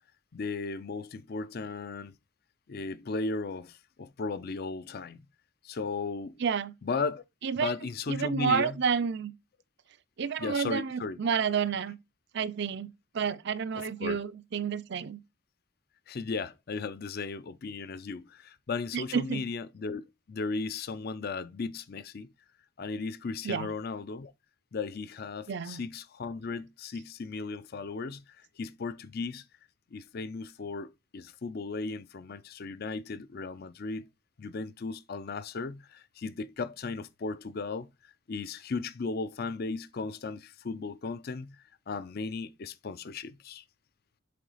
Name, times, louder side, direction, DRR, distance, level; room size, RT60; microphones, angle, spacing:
voice 1, 0.3-2.2 2.7-5.2 5.6-6.4 6.8-7.2 7.6-8.8 10.4-11.2 13.7-14.2 16.1-22.3 22.8-24.3 24.7-29.4 29.9-34.1 34.4-37.9 38.3-41.6 41.9-43.6, left 4 dB, 45° left, 0.5 m, -36 dB
voice 2, 6.4-6.7 7.4-7.7 8.1-9.3 10.2-12.0 12.3-15.2 18.9-19.4 23.4-23.7 25.5-25.8, right 6 dB, 55° right, 0.5 m, -30 dB
7.5 x 3.9 x 4.0 m
head